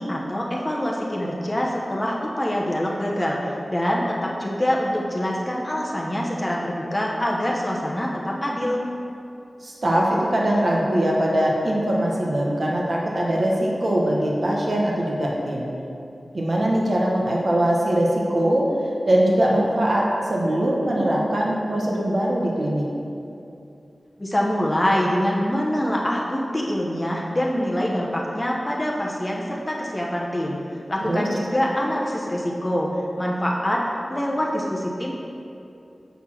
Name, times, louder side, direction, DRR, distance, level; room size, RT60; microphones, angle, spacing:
voice 1, 0.0-3.4 3.7-8.8 24.2-30.6 30.9-32.9 33.2-33.8 34.1-35.1, equal, 20° left, -3 dB, 0.9 m, -25 dB
voice 2, 9.6-15.7 16.3-18.7 19.1-22.9 31.0-31.3, right 1 dB, 55° right, -3 dB, 1.1 m, -22 dB
8.1 x 4.3 x 5.9 m, 2.7 s
wide cardioid pair, 80°, 0 cm